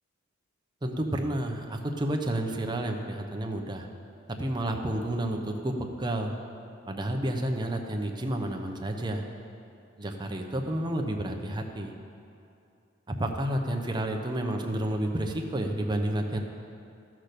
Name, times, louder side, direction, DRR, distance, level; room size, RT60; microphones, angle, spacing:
voice 1, 0.8-3.9 4.3-6.4 6.9-9.2 10.0-11.9 13.1-16.4, right 1 dB, 20° right, 3 dB, 0.8 m, -30 dB
13.0 x 6.1 x 6.7 m, 2.6 s
head